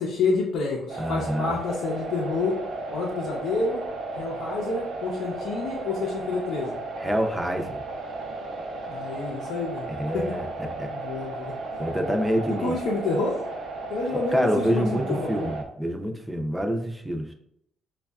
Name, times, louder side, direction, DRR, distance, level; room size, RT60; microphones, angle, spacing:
voice 1, 0.0-2.6 2.9-3.8 4.2-6.8 8.9-10.3 10.9-11.8 12.6-13.4 13.9-15.5, left 3 dB, 85° left, -4 dB, 0.6 m, -29 dB
sound 1, 0.9-15.6, right 2 dB, 80° right, 0.6 m, -34 dB
voice 2, 1.0-1.6 7.0-7.8 9.9-10.5 10.8-10.9 11.8-12.7 14.1-17.2, equal, 5° right, 4 dB, 0.5 m, -27 dB
5.2 x 2.3 x 2.3 m, 0.73 s
cardioid pair, 90°, 0 cm